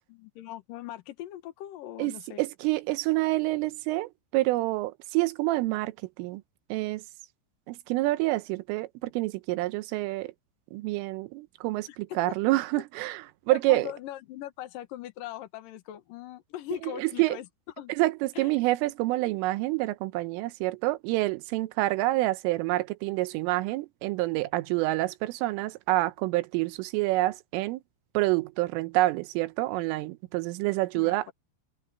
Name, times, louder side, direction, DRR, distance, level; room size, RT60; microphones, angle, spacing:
voice 1, 0.1-2.4 11.9-12.4 13.5-17.5 17.8-17.9 18.4-18.5 31.0-31.3, left 13 dB, 70° left, 2.2 m, -40 dB
voice 2, 2.0-6.4 6.7-7.0 7.7-10.3 10.7-13.9 16.8-17.4 17.9-27.8 28.2-31.3, right 19 dB, 90° right, 3.5 m, -27 dB
omnidirectional pair, 5.6 m